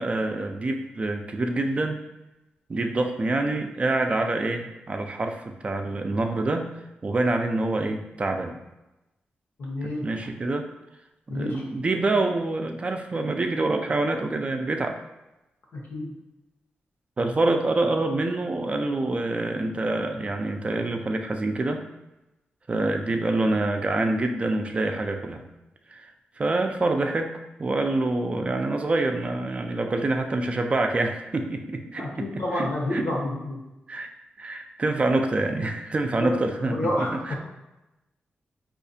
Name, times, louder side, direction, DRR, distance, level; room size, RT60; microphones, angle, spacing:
voice 1, 0.0-2.0 2.7-6.7 7.0-8.6 9.8-10.7 11.3-15.0 17.2-21.8 22.7-25.4 25.9-26.1 26.4-27.3 27.6-33.1 33.9-34.1 34.4-37.3, right 2 dB, 35° right, 5 dB, 0.3 m, -26 dB
voice 2, 9.6-10.1 11.3-11.6 15.9-16.1 32.0-33.6 36.2-37.4, left 1 dB, 80° left, -2 dB, 1.0 m, -29 dB
4.7 x 2.4 x 2.6 m, 0.98 s
wide cardioid pair, 105°, 4 cm